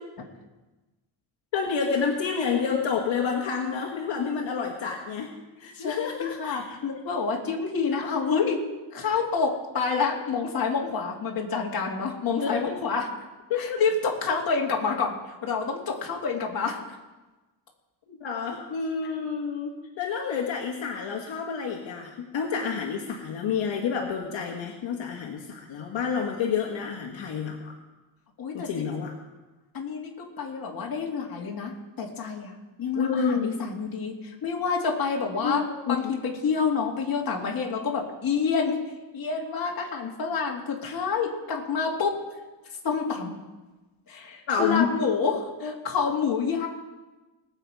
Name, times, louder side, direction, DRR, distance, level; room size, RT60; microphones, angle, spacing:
voice 1, 1.5-5.3 5.6-6.6 7.9-8.1 12.4-12.7 13.5-13.8 18.1-27.7 28.5-29.1 32.9-33.6 35.4-36.0 44.5-44.9 45.6-45.7, left 6 dB, 65° left, 0 dB, 1.6 m, -29 dB
voice 2, 5.8-8.6 8.9-13.1 13.6-16.8 28.4-28.9 29.7-31.7 32.0-32.5 32.8-35.6 35.9-38.8 39.1-42.1 42.8-43.3 44.1-46.7, left 5 dB, 45° left, -1 dB, 2.1 m, -28 dB
20.5 x 7.2 x 4.8 m, 1.1 s
wide cardioid pair, 165°, 47 cm